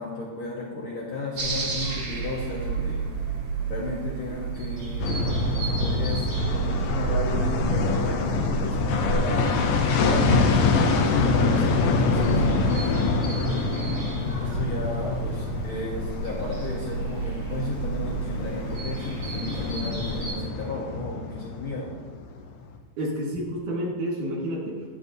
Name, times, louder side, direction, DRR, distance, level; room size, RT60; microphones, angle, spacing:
voice 1, 0.0-3.1 3.7-9.4 10.0-13.7 14.4-21.9, left 2 dB, 60° left, -4 dB, 1.5 m, -34 dB
sound 1, 1.4-20.3, right 5 dB, 45° right, 1.4 m, -31 dB
sound 2, 5.0-22.5 22.8-22.9, left 4 dB, 85° left, 1.3 m, -26 dB
voice 2, 23.0-24.9, equal, 80° right, -3 dB, 3.4 m, -30 dB
9.7 x 9.3 x 2.7 m, 1.4 s
omnidirectional pair, 3.5 m